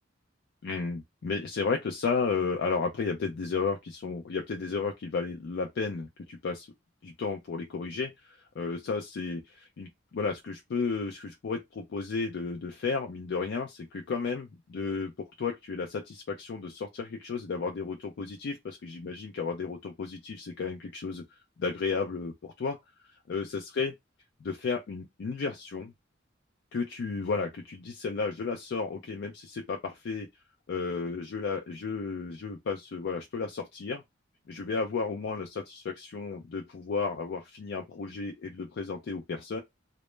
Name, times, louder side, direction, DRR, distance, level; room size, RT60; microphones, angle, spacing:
voice 1, 0.6-6.7 7.0-21.2 21.6-22.8 23.3-23.9 24.4-25.9 26.7-30.3 30.7-34.0 34.5-39.6, left 4 dB, 60° left, 0.4 m, -33 dB
2.0 x 2.0 x 3.1 m
head